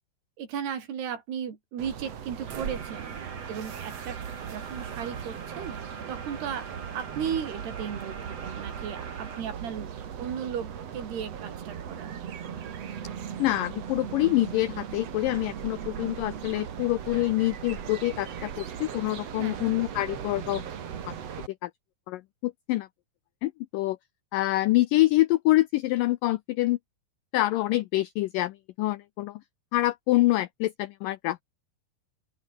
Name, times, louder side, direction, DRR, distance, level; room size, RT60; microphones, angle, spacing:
voice 1, 0.4-4.2 4.5-5.8 6.1-6.7 6.9-9.9 10.2-12.2 19.4-19.8, right 8 dB, 75° right, 5.3 m, -35 dB
sound 1, 1.8-21.5, right 8 dB, 50° right, 2.5 m, -38 dB
sound 2, 2.5-9.4, right 5 dB, 30° right, 2.5 m, -44 dB
voice 2, 13.4-20.7 21.1-21.2 21.6-21.7 22.1-22.9 23.4-24.0 24.3-26.8 27.3-29.4 29.7-31.4, left 17 dB, 85° left, 1.9 m, -26 dB
open air
omnidirectional pair, 4.7 m